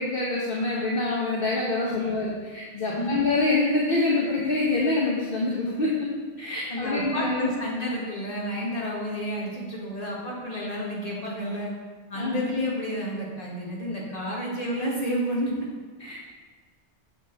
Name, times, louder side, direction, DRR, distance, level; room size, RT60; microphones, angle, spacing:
voice 1, 0.0-5.9 6.4-7.5 12.2-12.5 16.0-16.1, left 2 dB, 55° left, -4 dB, 1.3 m, -26 dB
voice 2, 6.7-11.7 12.1-15.7, equal, 35° left, -4 dB, 2.0 m, -30 dB
9.0 x 6.7 x 4.1 m, 1.4 s
omnidirectional pair, 1.1 m